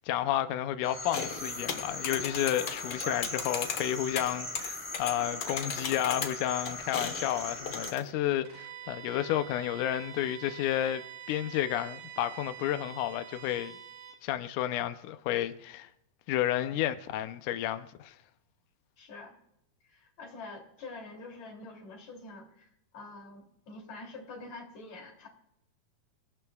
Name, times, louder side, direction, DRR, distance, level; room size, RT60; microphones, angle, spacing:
voice 1, 0.1-13.7 14.2-15.9 16.3-18.1, left 12 dB, 90° left, 1.8 m, -31 dB
sound 1, 0.8-7.9, left 1 dB, 5° left, 1.3 m, -40 dB
sound 2, 1.1-8.1, left 6 dB, 65° left, 1.5 m, -38 dB
Bowed string instrument, 8.4-14.2, right 10 dB, 70° right, 3.7 m, -46 dB
voice 2, 19.0-19.4 19.8-22.7 22.9-25.3, left 3 dB, 45° left, 4.0 m, -46 dB
27.5 x 17.5 x 2.4 m
omnidirectional pair, 4.6 m